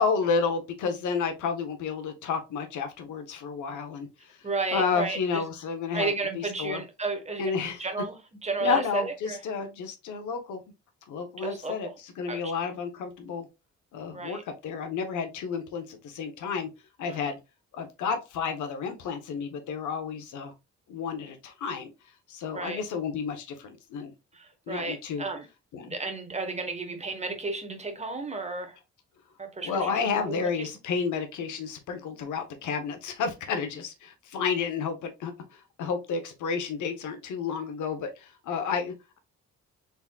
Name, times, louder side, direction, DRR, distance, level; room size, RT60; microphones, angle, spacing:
voice 1, 0.0-4.4 4.7-6.8 7.4-7.8 8.6-10.6 11.1-13.5 13.9-16.7 17.0-17.4 17.7-20.5 20.9-21.9 22.3-24.1 24.7-25.3 25.7-25.9 29.6-35.3 35.8-39.2, left 5 dB, 75° left, 1.0 m, -31 dB
voice 2, 4.4-5.4 5.9-8.2 8.4-9.4 11.4-11.8 12.3-12.4 14.1-14.4 17.1-17.3 22.5-22.8 24.3-25.5 25.8-28.8 29.4-30.0 30.3-30.7, right 3 dB, 20° right, 1.2 m, -33 dB
4.0 x 3.5 x 2.3 m
cardioid pair, 90°, 30 cm